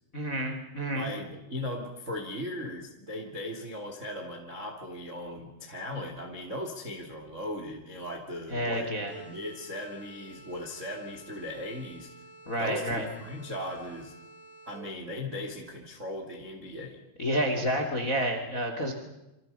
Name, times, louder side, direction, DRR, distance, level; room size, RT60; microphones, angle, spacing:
voice 1, 0.1-1.1 8.5-9.1 12.5-13.1 17.2-18.9, equal, 25° left, 5 dB, 2.0 m, -29 dB
voice 2, 0.9-8.9 9.1-12.1 12.6-14.1 14.6-17.0, left 1 dB, 25° right, 3 dB, 1.7 m, -38 dB
sound 1, 9.1-15.0, right 3 dB, 80° right, 7.8 m, -51 dB
28.0 x 26.0 x 5.6 m, 0.94 s
omnidirectional pair, 5.7 m